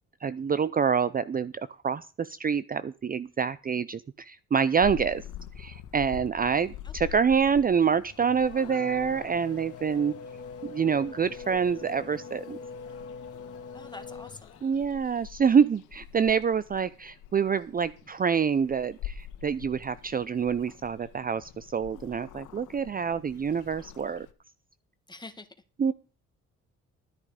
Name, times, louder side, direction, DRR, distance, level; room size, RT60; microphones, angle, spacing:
voice 1, 0.2-5.2 5.6-10.1 10.6-12.6 14.6-24.3 25.8-25.9, right 6 dB, 30° right, 16 dB, 0.6 m, -26 dB
Purr / Meow, 4.8-24.3, left 11 dB, 90° left, 1.4 m, -46 dB
Race car auto racing / Accelerating revving vroom, 7.7-15.0, left 5 dB, 50° left, 2.6 m, -43 dB
voice 2, 13.7-14.6 25.1-25.5, left 3 dB, 15° left, 7 dB, 2.0 m, -45 dB
13.5 x 9.8 x 5.1 m, 0.35 s
cardioid pair, 90°, 30 cm